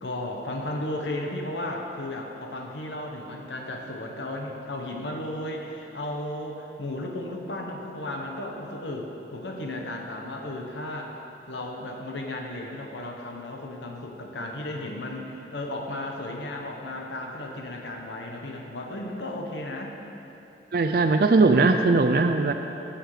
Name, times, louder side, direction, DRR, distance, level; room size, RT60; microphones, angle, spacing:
voice 1, 0.0-11.2 11.5-20.0, left 1 dB, 85° left, 1 dB, 1.2 m, -34 dB
voice 2, 20.7-22.5, right 3 dB, 55° right, 6 dB, 0.4 m, -19 dB
17.5 x 6.4 x 4.9 m, 2.9 s
head